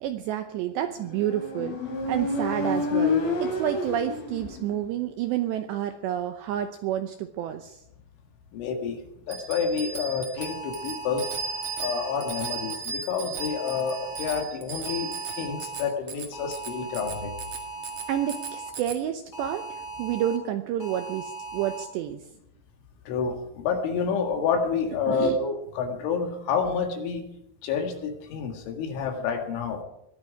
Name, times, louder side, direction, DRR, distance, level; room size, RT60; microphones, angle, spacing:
voice 1, 0.0-1.8 2.1-7.8 18.1-22.2 25.1-25.4, right 11 dB, 80° right, 7 dB, 2.5 m, -29 dB
Motorcycle, 1.1-4.8, left 3 dB, 50° left, 4.5 m, -28 dB
voice 2, 8.5-11.3 11.8-17.3 23.1-27.3 27.6-29.8, left 6 dB, 70° left, 4 dB, 4.1 m, -29 dB
Bicycle bell, 9.3-19.0, right 5 dB, 60° right, 1.5 m, -36 dB
sound 1, 10.4-12.7 13.4-14.4 14.8-15.9 16.3-18.7 19.3-20.4 20.8-21.8, right 4 dB, 30° left, 2.2 m, -38 dB
21.5 x 13.5 x 4.9 m, 0.80 s
omnidirectional pair, 5.9 m